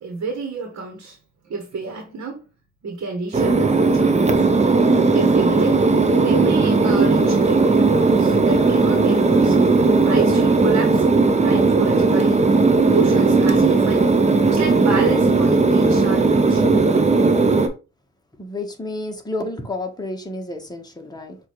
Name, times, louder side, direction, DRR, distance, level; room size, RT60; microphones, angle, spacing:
voice 1, 0.0-1.2 1.4-2.4 2.8-4.6 5.1-5.8 6.2-9.6 10.0-12.5 12.9-14.1 14.5-16.6, right 4 dB, 55° right, 1.2 m, -29 dB
sound 1, 3.3-17.7, right 3 dB, 25° right, 0.7 m, -17 dB
voice 2, 18.4-21.4, left 2 dB, 15° left, 1.1 m, -30 dB
6.2 x 2.6 x 3.1 m
cardioid pair, 90°, 30 cm